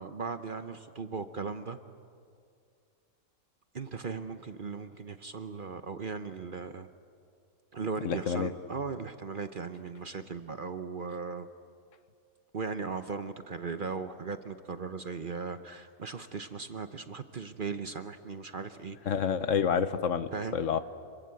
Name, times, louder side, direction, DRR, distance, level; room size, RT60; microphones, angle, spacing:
voice 1, 0.0-1.8 3.7-6.9 7.7-11.5 12.5-19.2 20.3-20.6, right 5 dB, 45° right, 10 dB, 0.9 m, -38 dB
voice 2, 8.0-8.5 19.1-20.8, left 7 dB, 65° left, 12 dB, 1.2 m, -28 dB
27.0 x 23.0 x 8.3 m, 2.3 s
omnidirectional pair, 1.5 m